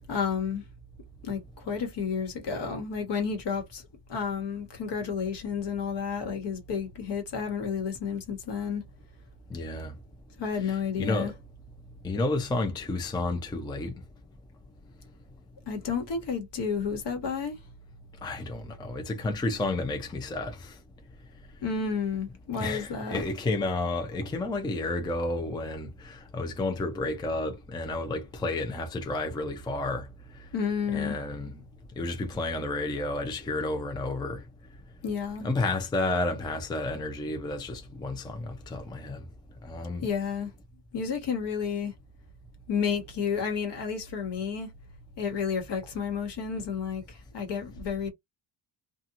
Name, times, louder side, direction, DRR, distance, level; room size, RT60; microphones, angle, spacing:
voice 1, 0.1-0.6 1.2-3.8 4.1-8.8 10.4-11.3 15.7-17.6 21.6-23.2 30.5-31.2 35.0-35.5 40.0-40.5 40.9-41.9 42.7-44.7 45.2-48.1, left 6 dB, 65° left, 1.3 m, -31 dB
voice 2, 9.5-9.9 10.6-11.3 12.0-13.9 18.2-20.7 22.6-30.1 30.9-31.5 32.0-34.4 35.4-39.2 39.6-40.1, left 2 dB, 10° left, 0.4 m, -31 dB
2.8 x 2.4 x 2.5 m
cardioid pair, 155°, 45 cm